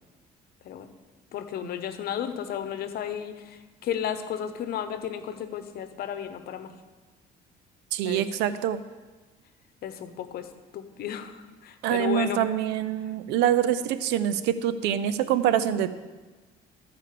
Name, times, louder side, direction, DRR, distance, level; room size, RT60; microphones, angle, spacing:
voice 1, 1.3-6.7 8.0-8.3 9.8-10.5 10.7-12.4, left 9 dB, 65° left, 10 dB, 1.0 m, -33 dB
voice 2, 7.9-8.8 11.8-15.9, right 10 dB, 90° right, 13 dB, 0.6 m, -25 dB
13.5 x 5.1 x 6.7 m, 1.3 s
cardioid pair, 110°, 17 cm